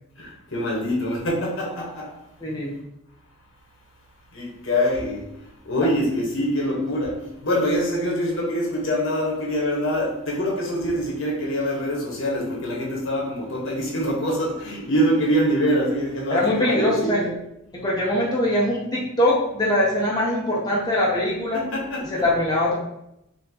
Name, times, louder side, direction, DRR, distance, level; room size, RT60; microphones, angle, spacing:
voice 1, 0.2-2.1 4.3-5.3 5.6-17.3 21.5-22.1, equal, 65° left, -3 dB, 1.2 m, -24 dB
voice 2, 2.4-2.7 16.3-17.2 17.7-21.6 22.1-22.7, left 1 dB, 20° left, -5 dB, 0.6 m, -22 dB
4.3 x 2.8 x 2.8 m, 0.83 s
head